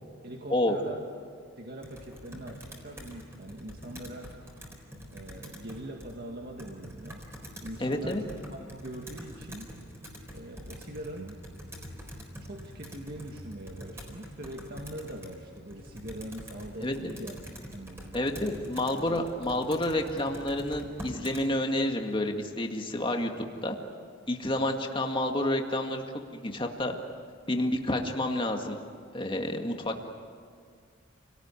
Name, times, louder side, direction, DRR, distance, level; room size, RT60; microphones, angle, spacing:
voice 1, 0.2-1.1 1.6-4.3 5.1-7.2 7.6-9.7 10.3-11.4 12.4-17.4 17.7-18.3 19.1-19.3 24.5-24.8, right 1 dB, 50° right, 1 dB, 2.0 m, -42 dB
Computer keyboard, 1.8-21.5, equal, 10° right, 4.0 m, -45 dB
voice 2, 7.8-8.2 16.8-17.2 18.1-23.3 23.6-23.8 24.3-26.0 26.3-27.0 27.5-28.8 29.1-30.0, left 1 dB, 25° left, 3 dB, 2.0 m, -29 dB
29.5 x 18.5 x 9.9 m, 2.1 s
head